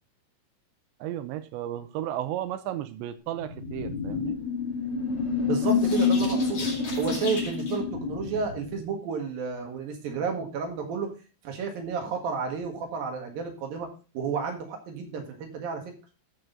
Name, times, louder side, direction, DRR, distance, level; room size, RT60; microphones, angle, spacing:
voice 1, 1.0-4.4, right 12 dB, 80° right, 11 dB, 2.8 m, -34 dB
sound 1, 3.4-8.8, left 5 dB, 35° left, 2.3 m, -28 dB
voice 2, 5.4-6.7 7.0-11.1 11.4-15.9, right 5 dB, 60° right, 3 dB, 3.1 m, -31 dB
13.5 x 6.5 x 3.9 m, 0.32 s
omnidirectional pair, 5.5 m